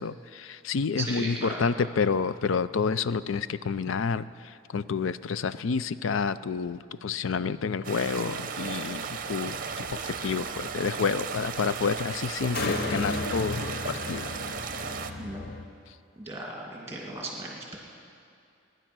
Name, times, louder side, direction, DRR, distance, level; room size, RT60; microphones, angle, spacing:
voice 1, 0.0-14.3, left 5 dB, 70° left, 15 dB, 0.4 m, -29 dB
voice 2, 1.0-1.6 15.2-15.4 16.2-17.8, right 2 dB, 15° right, -2 dB, 2.4 m, -36 dB
sound 1, 7.8-15.1, right 5 dB, 40° right, 0.7 m, -35 dB
sound 2, 8.3-15.7, left 2 dB, 50° left, 0.9 m, -37 dB
21.0 x 10.0 x 6.1 m, 2.5 s
head